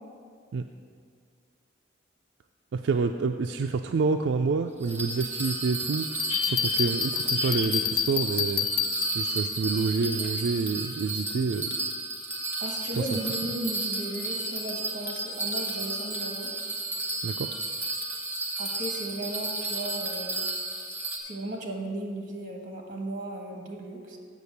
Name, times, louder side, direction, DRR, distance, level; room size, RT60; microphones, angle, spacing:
voice 1, 2.7-8.7 9.1-11.7 12.7-13.1 17.2-17.5, right 4 dB, 75° right, 5 dB, 0.3 m, -28 dB
Bell, 4.8-21.2, right 2 dB, 10° right, 1.0 m, -33 dB
Bell 2, 6.2-9.5, left 10 dB, 55° left, 0.4 m, -29 dB
sound 1, 6.3-9.3 10.2-10.3, left 6 dB, 30° left, 0.8 m, -36 dB
voice 2, 12.6-16.5 18.6-20.5 21.2-24.2, right 1 dB, 45° right, 1 dB, 1.4 m, -36 dB
8.2 x 6.6 x 7.0 m, 2.1 s
head